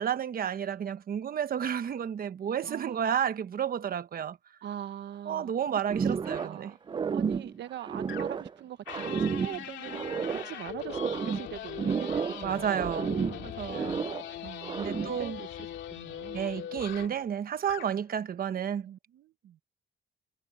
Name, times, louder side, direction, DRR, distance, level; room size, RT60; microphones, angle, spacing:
voice 1, 0.0-4.4 5.3-6.7 12.4-13.1 13.4-14.0 14.8-15.4 16.3-18.9, right 8 dB, 55° right, 1.2 m, -31 dB
voice 2, 2.6-3.1 4.6-5.8 6.2-6.8 7.1-12.9 13.7-14.0 14.4-15.5 15.9-16.5 18.8-19.6, right 11 dB, 75° right, 1.1 m, -42 dB
sound 1, 5.9-6.6 6.9-8.5 8.9-10.5 10.9-12.5 12.7-14.3 14.6-15.2, right 6 dB, 25° right, 0.3 m, -31 dB
sound 2, 6.2-6.5 8.1-8.5 8.9-17.2 17.6-18.0, left 11 dB, 85° left, 2.4 m, -41 dB
cardioid pair, 105°, 18 cm